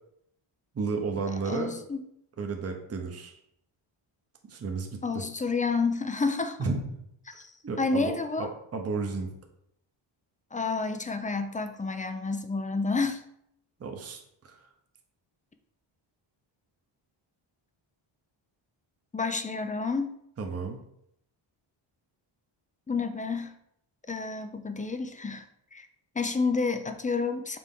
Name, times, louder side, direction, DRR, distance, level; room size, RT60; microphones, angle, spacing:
voice 1, 0.7-1.7 2.4-3.4 4.5-5.2 6.6-7.0 7.6-8.1 8.4-9.3 13.8-14.6 20.4-20.8, right 4 dB, 30° right, 3 dB, 0.8 m, -32 dB
voice 2, 1.4-2.0 5.0-6.6 7.3-8.5 10.5-13.2 19.1-20.1 22.9-23.6 24.1-25.5 25.7-25.9 26.2-27.6, left 4 dB, 20° left, 8 dB, 0.3 m, -30 dB
6.1 x 4.3 x 3.6 m, 0.73 s
wide cardioid pair, 135°, 50 cm